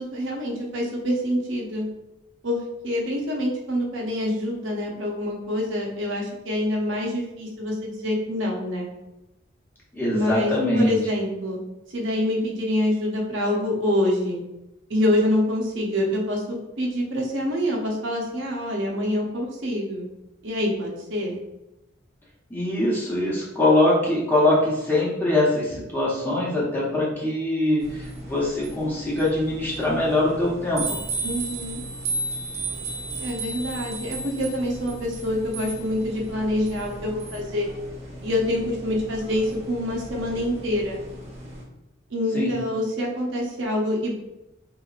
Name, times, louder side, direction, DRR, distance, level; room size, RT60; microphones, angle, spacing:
voice 1, 0.0-1.8 2.4-8.9 10.1-11.6 11.9-14.4 14.9-20.1 20.4-21.4 31.2-31.8 33.2-37.7 38.2-41.0 42.1-44.1, left 1 dB, 65° right, -1 dB, 0.7 m, -26 dB
voice 2, 9.9-11.0 22.5-30.8 42.3-42.5, left 1 dB, 10° left, -6 dB, 0.9 m, -23 dB
sound 1, 27.8-41.6, right 2 dB, 30° right, 0.7 m, -35 dB
3.9 x 2.9 x 2.4 m, 0.91 s
head